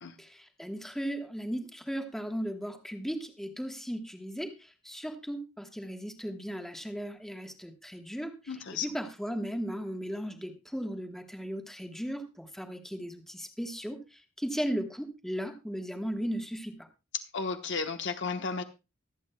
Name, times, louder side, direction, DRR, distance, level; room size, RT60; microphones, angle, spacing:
voice 1, 0.2-16.9, equal, ahead, 4 dB, 1.3 m, -36 dB
voice 2, 8.5-8.9 17.3-18.6, left 4 dB, 65° left, 6 dB, 1.1 m, -33 dB
23.5 x 8.3 x 2.2 m, 0.27 s
head